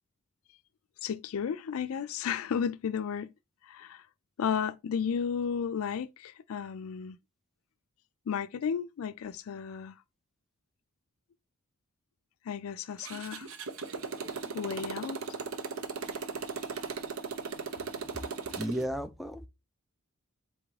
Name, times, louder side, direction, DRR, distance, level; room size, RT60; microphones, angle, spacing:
voice 1, 1.0-3.3 3.6-4.0 4.4-7.2 8.3-10.0 12.5-13.5 14.5-15.2, left 7 dB, 75° left, 0.4 m, -33 dB
Motorcycle, 13.0-18.9, right 5 dB, 70° right, 0.6 m, -37 dB
voice 2, 18.6-19.5, equal, ahead, 0.4 m, -33 dB
4.2 x 3.5 x 3.2 m
head